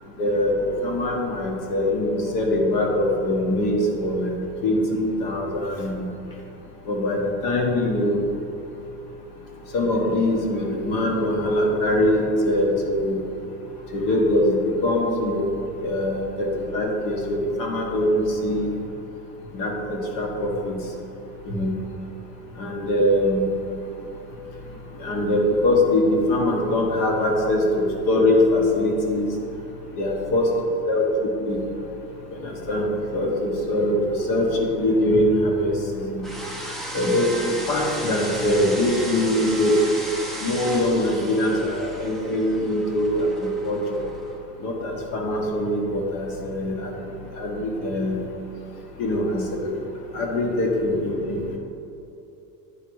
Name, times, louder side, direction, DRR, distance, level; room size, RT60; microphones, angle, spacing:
voice 1, 0.2-4.3 4.6-6.1 6.9-8.2 9.7-13.2 13.9-15.5 15.8-18.7 19.5-20.8 21.4-21.7 22.6-23.5 25.0-29.3 30.0-30.5 30.9-31.1 31.5-31.6 32.3-32.9 33.1-36.2 36.9-39.8 40.4-44.0 44.6-47.1 47.4-48.2 49.0-49.7 50.1-51.6, left 1 dB, 55° left, 0 dB, 1.3 m, -23 dB
sound 1, 36.2-44.4, right 1 dB, ahead, 0.4 m, -35 dB
9.7 x 3.4 x 4.6 m, 2.8 s
cardioid pair, 160°, 40 cm